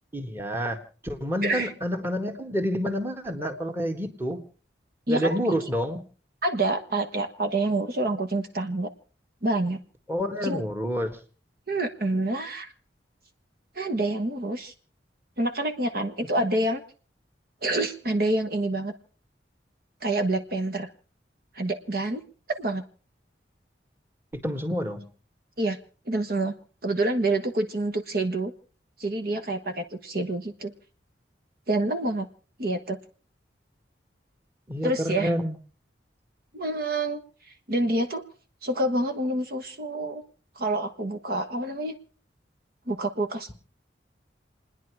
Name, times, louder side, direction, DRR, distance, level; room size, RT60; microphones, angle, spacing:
voice 1, 0.1-4.4 5.1-6.0 10.1-11.2 24.3-25.1 34.7-35.6, equal, 10° right, 6 dB, 1.7 m, -28 dB
voice 2, 1.4-1.7 5.1-5.5 6.4-8.9 9.4-9.8 10.4-10.6 11.7-12.7 13.7-14.7 15.4-16.8 17.6-18.9 20.0-20.9 21.5-22.2 22.6-22.8 25.6-25.8 26.1-26.5 26.8-28.5 29.0-30.7 31.7-32.3 32.6-33.0 34.8-35.3 36.5-37.2 37.7-38.2 38.6-40.2 40.6-41.9 42.9-43.5, right 2 dB, 55° right, 6 dB, 1.3 m, -27 dB
29.0 x 10.0 x 4.7 m, 0.39 s
head